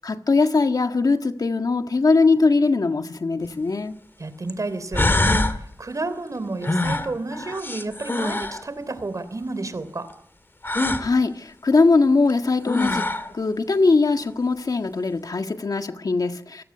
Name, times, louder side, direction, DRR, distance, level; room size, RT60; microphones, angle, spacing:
voice 1, 0.0-3.9 10.7-16.6, left 3 dB, 60° left, 1.6 m, -21 dB
sound 1, 3.4-3.5 4.5-4.6 4.9-5.6 6.6-8.6 10.6-11.1 12.3-12.4 12.7-13.3, left 2 dB, 30° left, 1.9 m, -23 dB
voice 2, 4.2-5.4 5.8-10.2, right 3 dB, 50° right, 3.2 m, -31 dB
27.0 x 17.5 x 9.7 m
wide cardioid pair, 65°, 7 cm